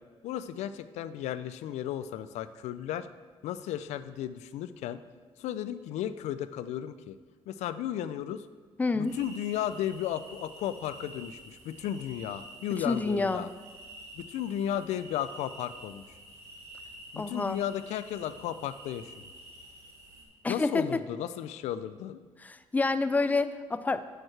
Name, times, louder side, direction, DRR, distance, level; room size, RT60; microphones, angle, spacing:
voice 1, 0.2-3.1 3.4-5.0 5.4-7.2 7.5-8.5 8.9-13.5 14.2-16.0 17.1-19.3 20.5-22.2, left 11 dB, 85° left, 13 dB, 0.4 m, -34 dB
voice 2, 8.8-9.1 12.7-13.5 17.2-17.6 20.4-21.0 22.4-24.0, left 3 dB, 15° left, 12 dB, 0.3 m, -28 dB
sound 1, 9.1-20.2, right 1 dB, 85° right, 1.4 m, -49 dB
8.5 x 6.6 x 3.3 m, 1.5 s
cardioid pair, 110°, 11 cm